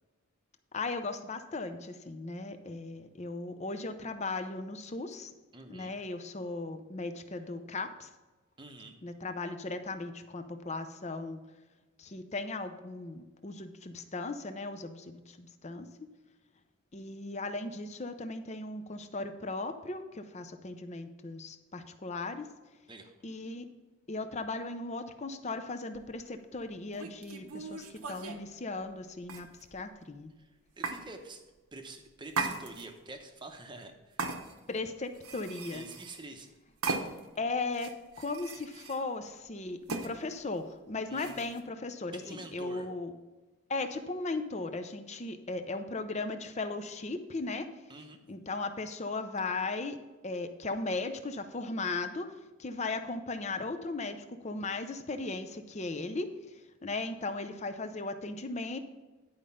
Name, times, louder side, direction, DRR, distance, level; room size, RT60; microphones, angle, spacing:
voice 1, 0.7-5.3 5.7-8.1 9.0-11.5 12.0-16.1 16.9-22.5 23.2-23.7 24.1-30.3 34.7-35.9 37.4-43.1 43.7-47.9 48.3-58.8, left 3 dB, 30° left, 9 dB, 0.6 m, -37 dB
voice 2, 5.5-5.9 8.6-8.9 22.9-23.1 30.4-31.4 31.7-34.3 35.7-36.5 41.1-41.5 42.1-42.9 47.9-48.2, right 2 dB, 20° right, 5 dB, 0.8 m, -47 dB
sound 1, 25.9-26.1 26.9-28.4 29.2-29.9 30.8-31.0 32.3-33.1 34.2-34.8 35.1-36.2 36.8-37.4 37.7-39.0 39.9-40.1 41.2-41.6, right 4 dB, 85° right, 1.0 m, -37 dB
10.5 x 5.0 x 5.5 m, 1.2 s
head